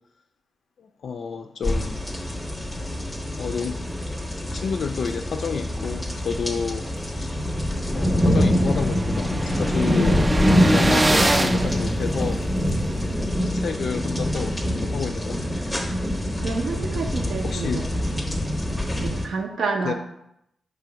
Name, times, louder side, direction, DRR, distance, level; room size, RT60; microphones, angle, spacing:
voice 1, 0.8-2.0 3.4-3.9 4.5-6.9 7.1-7.3 7.9-10.3 10.7-13.0 13.4-15.5 17.4-18.1 19.8-19.9, left 6 dB, 65° left, 6 dB, 0.3 m, -30 dB
sound 1, 1.6-19.3, equal, ahead, 0.8 m, -24 dB
sound 2, 7.1-7.2 7.6-7.7 7.8-12.7, right 1 dB, 20° right, 0.3 m, -26 dB
voice 2, 16.4-17.8 19.0-19.9, right 4 dB, 75° right, 3 dB, 0.8 m, -28 dB
5.6 x 3.3 x 5.1 m, 0.79 s
wide cardioid pair, 125°, 0 cm